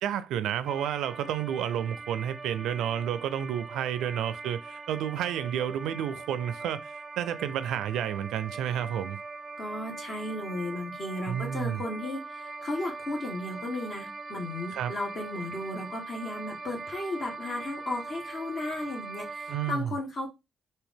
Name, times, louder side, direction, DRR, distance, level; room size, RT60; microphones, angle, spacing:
voice 1, 0.0-6.8 7.2-9.2 11.3-11.8 14.7-14.9 19.5-19.9, right 10 dB, 85° right, 0.4 m, -31 dB
sound 1, 0.7-19.7, right 3 dB, 30° right, 0.5 m, -41 dB
voice 2, 9.6-20.3, left 2 dB, 50° left, 1.4 m, -35 dB
3.5 x 2.7 x 3.5 m
cardioid pair, 90°, 0 cm